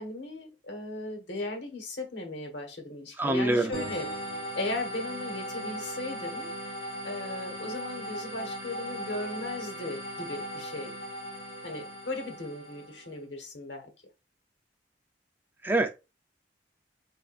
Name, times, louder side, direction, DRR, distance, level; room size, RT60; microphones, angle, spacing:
voice 1, 0.0-4.1 4.6-6.5 7.0-10.9 11.6-13.9, left 2 dB, 90° left, 1.2 m, -37 dB
voice 2, 3.2-3.7 15.6-15.9, right 2 dB, 10° right, 0.3 m, -24 dB
sound 1, 3.7-13.1, equal, 35° left, 2.0 m, -38 dB
6.6 x 2.5 x 2.4 m
head